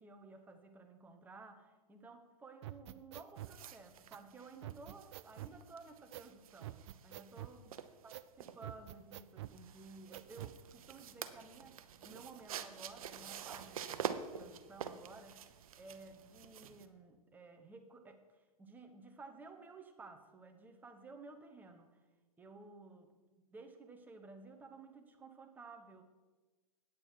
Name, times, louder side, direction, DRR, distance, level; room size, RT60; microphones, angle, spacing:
voice 1, 0.0-7.8 8.0-22.0 22.4-23.1 23.5-26.0, right 3 dB, 10° right, 6 dB, 0.8 m, -55 dB
sound 1, 2.6-3.6 4.1-4.2 4.6-5.6 6.1-6.3 6.6-7.6 8.1-8.3 8.6-9.6 10.1-10.6, right 14 dB, 45° right, 0.4 m, -47 dB
sound 2, 3.4-16.9, right 8 dB, 65° right, 0.7 m, -47 dB
9.0 x 8.6 x 4.6 m, 1.3 s
hypercardioid pair, 135°, 20 cm